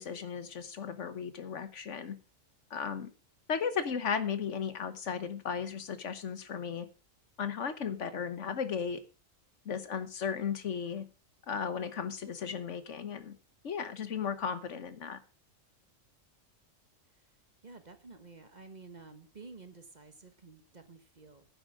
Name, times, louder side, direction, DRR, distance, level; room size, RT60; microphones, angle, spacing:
voice 1, 0.0-2.2 2.7-3.1 3.5-6.9 7.4-9.0 9.6-11.0 11.5-13.4 13.6-15.2, left 6 dB, 70° left, 12 dB, 1.4 m, -35 dB
voice 2, 17.6-21.5, right 4 dB, 35° right, 8 dB, 1.2 m, -51 dB
10.0 x 7.9 x 6.2 m, 0.34 s
omnidirectional pair, 1.3 m